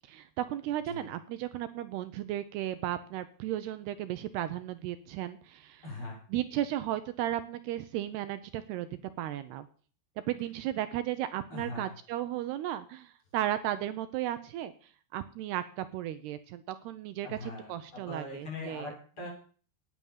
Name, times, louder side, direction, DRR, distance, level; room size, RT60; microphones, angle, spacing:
voice 1, 0.1-5.8 6.3-8.9 9.2-9.7 10.3-14.7 15.1-18.9, right 12 dB, 75° right, 12 dB, 2.8 m, -35 dB
voice 2, 5.8-6.2 11.5-11.9 17.2-19.3, left 2 dB, 30° left, -1 dB, 6.8 m, -41 dB
18.0 x 9.5 x 7.3 m, 0.42 s
omnidirectional pair, 5.0 m